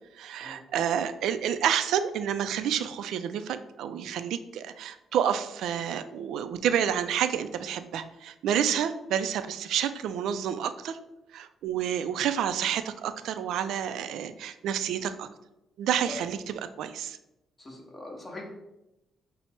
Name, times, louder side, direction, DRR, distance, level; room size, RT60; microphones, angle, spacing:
voice 1, 0.2-11.0 11.3-15.3 15.8-16.4 16.8-17.2, right 9 dB, 80° right, 11 dB, 0.3 m, -29 dB
voice 2, 17.6-18.4, left 2 dB, 25° left, -1 dB, 1.3 m, -43 dB
5.6 x 2.0 x 4.4 m, 0.91 s
cardioid pair, 90°, 0 cm